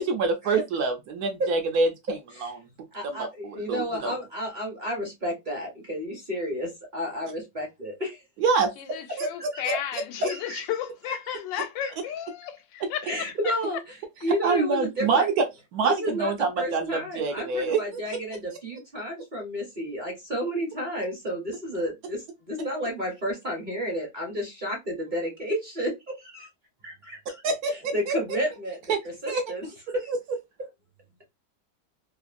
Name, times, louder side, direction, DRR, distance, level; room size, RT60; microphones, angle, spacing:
voice 1, 0.0-1.9 2.4-2.6 3.0-3.3 3.7-4.1 8.4-8.7 9.2-9.3 9.6-9.7 12.8-12.9 14.4-15.5 15.7-18.0 27.4-28.1 28.9-29.0 29.3-29.4 30.1-30.2, right 4 dB, 70° right, 0.9 m, -25 dB
voice 2, 2.9-8.2 9.5-9.6 10.3-10.6 11.1-11.9 13.0-13.9 14.2-15.3 15.8-25.9 26.2-26.5 26.8-27.4 27.7-28.8 29.2-29.7 29.9-30.1, equal, 40° right, 0.7 m, -32 dB
voice 3, 8.8-13.1, left 9 dB, 90° left, 1.3 m, -33 dB
3.1 x 2.4 x 2.4 m
omnidirectional pair, 1.9 m